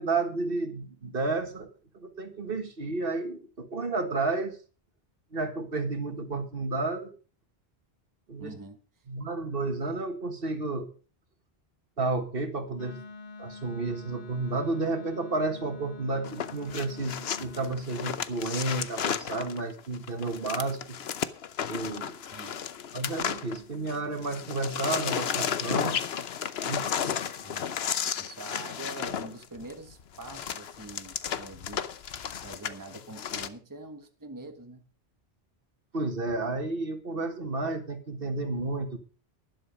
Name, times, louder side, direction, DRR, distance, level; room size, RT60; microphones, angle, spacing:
voice 1, 0.0-1.7 1.9-4.6 5.3-7.1 8.3-8.5 9.1-10.9 12.0-13.0 13.4-21.0 21.7-22.2 22.9-26.0 26.6-27.3 35.9-39.0, right 3 dB, 60° right, 7 dB, 1.9 m, -31 dB
voice 2, 8.4-8.8 22.3-22.6 27.4-27.7 28.2-31.9 32.4-34.9, right 2 dB, 20° right, 6 dB, 1.3 m, -44 dB
Wind instrument woodwind instrument, 12.8-17.9, left 3 dB, 60° left, 1.4 m, -46 dB
sound 1, 16.2-24.0 24.2-33.5, left 8 dB, 80° left, 1.1 m, -33 dB
12.0 x 11.0 x 5.2 m, 0.36 s
omnidirectional pair, 1.0 m